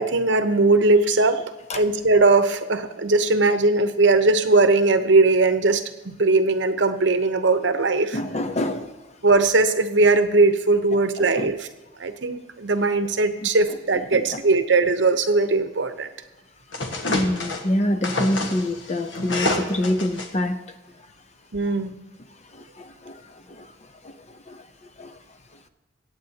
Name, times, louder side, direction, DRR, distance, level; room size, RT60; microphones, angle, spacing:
voice 1, 0.0-1.4 1.7-8.2 9.2-11.7 12.0-16.1 21.5-22.0, right 3 dB, 65° right, 9 dB, 0.9 m, -19 dB
voice 2, 8.1-9.0 11.4-11.5 13.4-13.5 14.1-14.4 17.1-20.6 22.8-23.2 23.5-23.7 24.0-24.1 24.5-24.6 25.0-25.1, left 1 dB, 35° left, 8 dB, 0.7 m, -26 dB
sound 1, 16.7-17.6 18.0-20.3, left 2 dB, 75° left, 1.4 m, -27 dB
22.5 x 8.9 x 2.8 m, 1.2 s
head